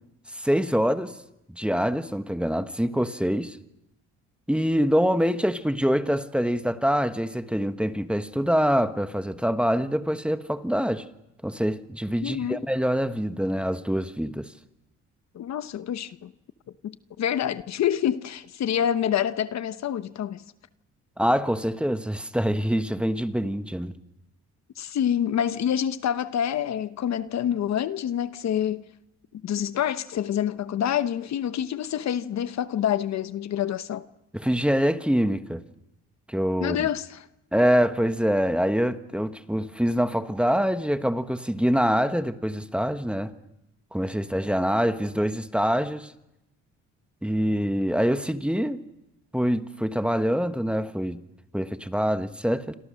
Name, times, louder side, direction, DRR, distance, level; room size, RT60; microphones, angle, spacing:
voice 1, 0.3-1.2 1.5-3.6 4.5-11.1 11.4-14.5 21.2-23.9 34.3-35.6 36.3-36.9 37.5-43.3 43.9-46.1 47.2-48.8 49.3-51.2 51.5-52.8, equal, 5° right, 1.3 m, -25 dB
voice 2, 12.2-12.6 15.3-16.3 16.8-20.4 24.8-28.9 29.3-34.1 36.6-37.3, left 10 dB, 60° left, 1.0 m, -27 dB
27.0 x 27.0 x 6.4 m
cardioid pair, 90°, 30 cm